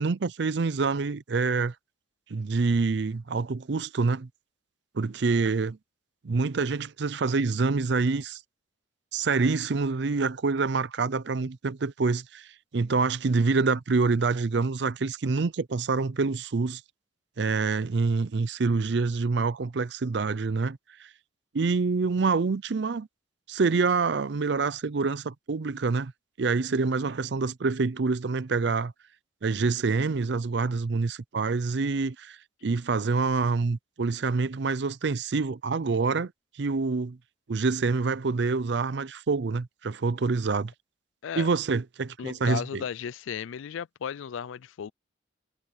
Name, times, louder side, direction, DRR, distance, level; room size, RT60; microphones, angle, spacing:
voice 1, 0.0-1.7 2.3-4.3 4.9-5.8 6.2-8.4 9.1-12.5 12.7-16.8 17.4-21.1 21.5-23.1 23.5-26.1 26.4-28.9 29.4-32.4 32.6-36.3 36.6-37.2 37.5-40.7 41.4-42.8, right 4 dB, 60° right, 0.5 m, -26 dB
voice 2, 42.2-44.9, left 8 dB, 80° left, 0.4 m, -35 dB
head